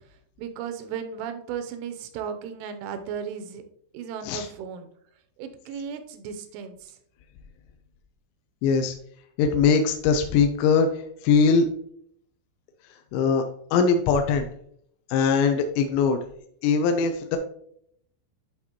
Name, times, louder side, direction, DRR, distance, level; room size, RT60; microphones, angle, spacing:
voice 1, 0.4-3.6 3.9-4.9 5.4-7.0, right 7 dB, 85° right, 8 dB, 3.3 m, -35 dB
voice 2, 8.6-8.9 9.4-10.9 11.2-11.7 13.1-13.4 13.7-14.5 15.1-16.2 16.6-17.4, left 5 dB, 85° left, 5 dB, 2.7 m, -21 dB
11.5 x 4.1 x 2.9 m, 0.66 s
omnidirectional pair, 5.5 m